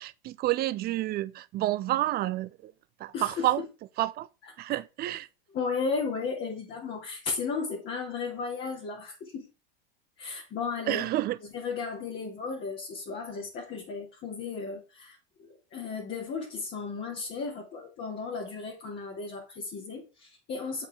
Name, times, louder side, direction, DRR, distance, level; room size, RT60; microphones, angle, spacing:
voice 1, 0.0-2.7 3.0-3.6 4.0-4.3 4.6-5.3 10.9-11.4, right 15 dB, 30° right, 0.6 m, -29 dB
voice 2, 3.1-3.7 4.4-4.5 5.5-9.5 10.2-11.1 11.4-15.2 15.7-20.9, left 4 dB, 40° left, 3.0 m, -34 dB
7.7 x 5.8 x 3.8 m
hypercardioid pair, 90°, 30 cm